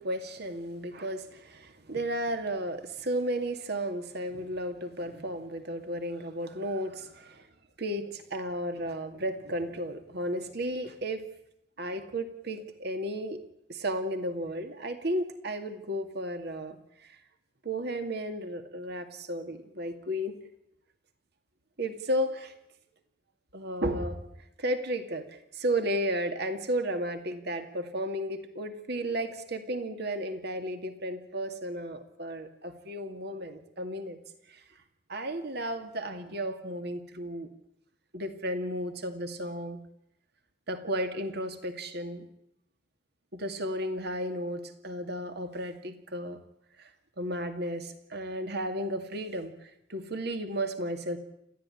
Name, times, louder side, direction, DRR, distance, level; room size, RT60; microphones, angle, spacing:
voice 1, 0.0-7.5 7.8-11.3 11.8-13.4 13.7-17.2 17.6-20.3 21.8-22.6 23.5-24.2 24.6-34.2 34.5-34.6 35.1-37.5 38.1-39.8 40.7-42.3 43.3-46.4 46.8-46.9 47.2-51.2, right 1 dB, 65° right, 7 dB, 2.3 m, -33 dB
29.0 x 14.0 x 10.0 m, 0.79 s
head